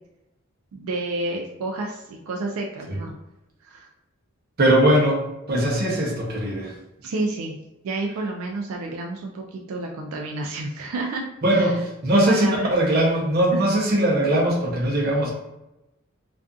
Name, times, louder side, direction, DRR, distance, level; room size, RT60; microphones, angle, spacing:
voice 1, 0.7-3.1 3.6-3.9 7.0-7.6 7.8-11.3 11.5-11.8 12.1-12.7 13.5-13.6, right 2 dB, 85° right, 1 dB, 0.3 m, -30 dB
voice 2, 4.6-6.7 11.4-15.3, right 1 dB, 45° right, -2 dB, 0.6 m, -20 dB
2.5 x 2.4 x 2.3 m, 0.93 s
head